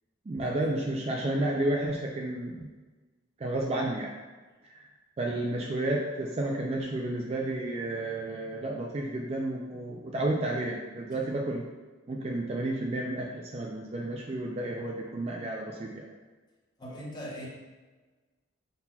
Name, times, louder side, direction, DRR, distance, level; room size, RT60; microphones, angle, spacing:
voice 1, 0.3-2.7 3.4-4.1 4.6-4.9 5.2-11.6 12.1-16.1, right 1 dB, 30° right, -1 dB, 0.4 m, -31 dB
voice 2, 16.8-17.5, equal, 20° left, -5 dB, 0.8 m, -41 dB
5.6 x 3.9 x 2.3 m, 1.3 s
head